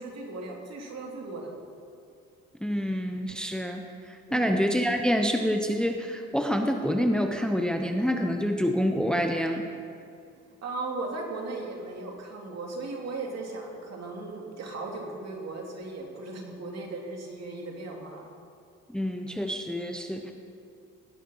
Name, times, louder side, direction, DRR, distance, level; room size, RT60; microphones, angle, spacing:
voice 1, 0.0-1.5 4.3-4.5 10.6-18.3, right 3 dB, 60° right, 0 dB, 2.6 m, -37 dB
voice 2, 2.6-9.7 18.9-20.3, equal, 5° left, 4 dB, 0.8 m, -27 dB
17.0 x 6.6 x 5.6 m, 2.5 s
cardioid pair, 90°, 30 cm